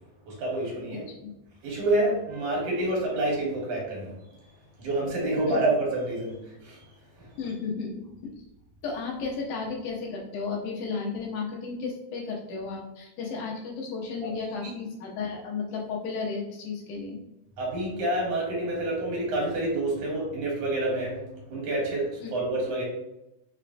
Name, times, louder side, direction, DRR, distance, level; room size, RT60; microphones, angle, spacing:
voice 1, 0.3-1.0 1.6-4.1 4.8-6.8 7.2-7.4 14.6-14.7 17.6-21.2 21.5-22.8, right 1 dB, 80° right, -3 dB, 2.7 m, -28 dB
voice 2, 7.4-8.3 8.8-17.2 22.2-22.3, left 4 dB, 90° left, -2 dB, 2.4 m, -33 dB
5.9 x 2.1 x 2.6 m, 0.89 s
omnidirectional pair, 3.4 m